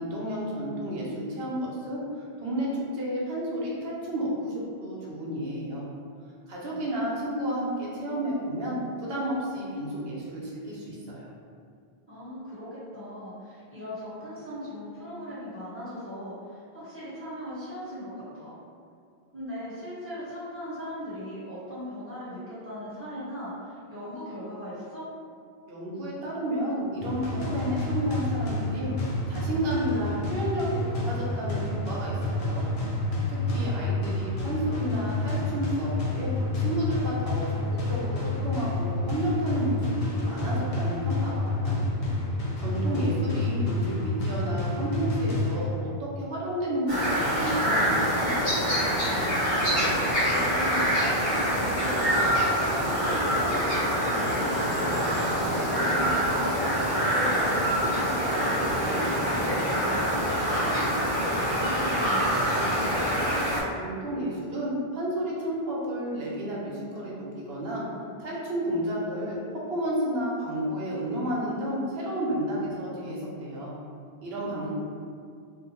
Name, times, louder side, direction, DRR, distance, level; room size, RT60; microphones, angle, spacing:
voice 1, 0.0-5.9 6.5-11.3 25.7-28.9 29.3-32.7 33.3-41.9 42.6-48.3 63.8-67.8 68.2-69.4 69.7-73.7 74.2-74.7, right 1 dB, 75° right, -5 dB, 0.9 m, -31 dB
voice 2, 12.1-18.5 19.3-25.1 33.6-34.1 49.6-49.9 50.3-56.4 57.0-63.1 74.5-74.7, equal, 15° right, -12 dB, 1.0 m, -38 dB
sound 1, 27.0-46.0, left 2 dB, 55° left, 0.4 m, -29 dB
sound 2, 46.9-63.6, equal, 70° left, 1.2 m, -25 dB
2.6 x 2.1 x 2.8 m, 2.2 s
omnidirectional pair, 1.0 m